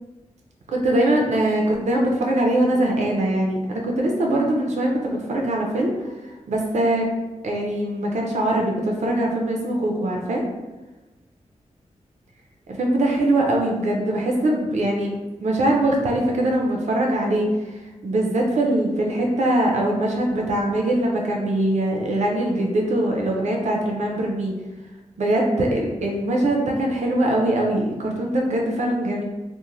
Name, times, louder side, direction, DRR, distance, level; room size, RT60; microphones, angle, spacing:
voice 1, 0.7-6.1 6.5-7.1 7.4-10.4 12.7-15.1 15.4-17.5 18.0-24.5 25.2-29.2, right 1 dB, 70° right, 0 dB, 0.5 m, -22 dB
2.5 x 2.1 x 3.0 m, 1.1 s
wide cardioid pair, 85°, 12 cm